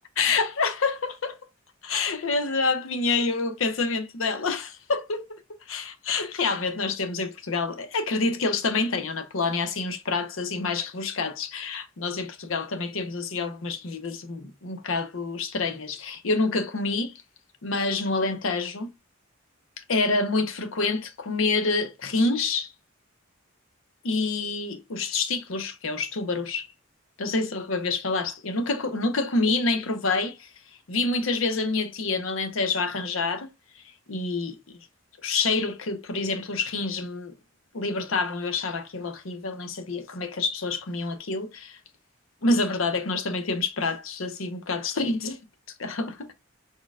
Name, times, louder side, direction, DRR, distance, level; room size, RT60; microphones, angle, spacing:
voice 1, 0.2-1.4 1.8-5.4 5.7-17.1 17.6-18.9 19.8-22.7 24.0-26.7 27.2-30.5 30.9-33.5 33.8-33.9 34.1-34.8 35.2-37.3 37.7-41.8 42.4-45.4 45.8-46.3, left 3 dB, 90° left, 0.8 m, -27 dB
4.1 x 3.8 x 2.3 m
head